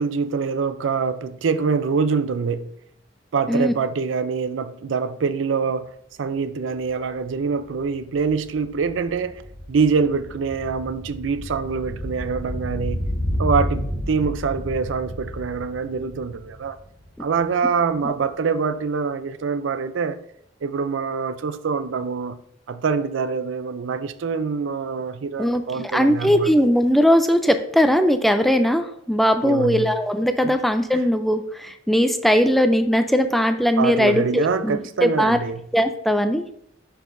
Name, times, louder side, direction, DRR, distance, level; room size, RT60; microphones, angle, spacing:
voice 1, 0.0-2.7 3.3-9.4 9.7-13.1 13.4-16.8 17.2-20.2 20.6-22.4 22.7-26.6 29.4-30.0 30.4-30.6 30.9-31.1 33.8-35.7, right 5 dB, 85° right, 0.4 m, -25 dB
sound 1, 7.8-17.5 17.8-17.9, equal, 55° left, 1.1 m, -31 dB
voice 2, 25.4-35.4 35.7-36.4, equal, ahead, 0.4 m, -19 dB
11.0 x 4.7 x 2.6 m
head